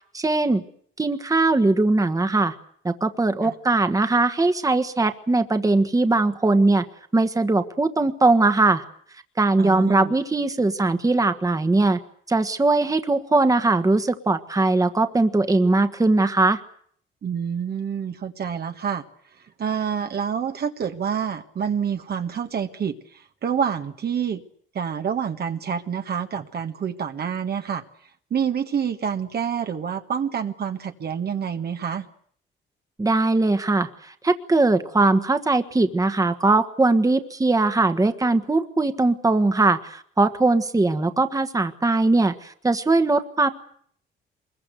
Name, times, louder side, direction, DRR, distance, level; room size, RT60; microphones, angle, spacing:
voice 1, 0.1-0.6 1.0-2.5 2.8-6.8 7.1-8.8 9.4-12.0 12.3-16.6 33.0-43.5, right 2 dB, 15° right, 9 dB, 1.5 m, -20 dB
voice 2, 9.6-10.1 17.2-19.0 19.6-24.4 24.7-27.8 28.3-32.1, right 7 dB, 55° right, 6 dB, 1.6 m, -27 dB
23.5 x 22.0 x 7.9 m, 0.62 s
cardioid pair, 90°, 20 cm